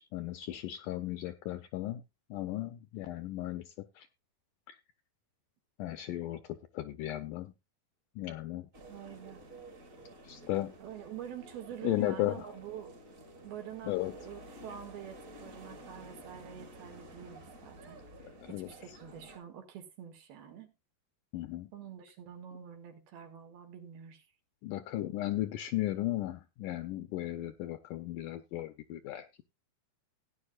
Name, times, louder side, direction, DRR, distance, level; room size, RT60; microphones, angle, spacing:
voice 1, 0.0-2.0 2.3-4.1 4.7-4.8 5.8-7.5 8.2-8.7 10.2-10.7 11.8-12.5 13.8-14.1 18.4-18.7 21.3-21.7 24.6-29.4, left 15 dB, 75° left, 2.0 m, -35 dB
sound 1, 8.7-19.4, right 1 dB, 30° right, 1.6 m, -52 dB
voice 2, 8.8-9.4 10.8-12.9 13.4-18.0 18.5-20.7 21.7-24.3, right 9 dB, 90° right, 3.8 m, -46 dB
16.5 x 10.0 x 2.3 m
omnidirectional pair, 4.2 m